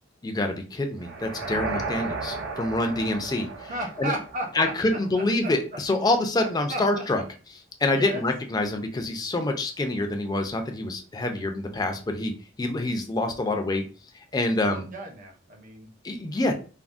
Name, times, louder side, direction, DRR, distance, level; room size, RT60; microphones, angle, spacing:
voice 1, 0.2-3.7 4.0-4.1 4.5-7.2 7.8-12.3 12.6-13.8 14.1-14.8 16.0-16.5, left 2 dB, 20° left, 5 dB, 0.4 m, -26 dB
sound 1, 1.0-5.1, right 3 dB, 80° right, 0.5 m, -34 dB
voice 2, 3.7-5.5 6.7-7.0 7.9-8.2 14.6-15.9 16.2-16.4, right 1 dB, 45° right, 2 dB, 0.7 m, -35 dB
3.4 x 2.0 x 2.4 m, 0.37 s
head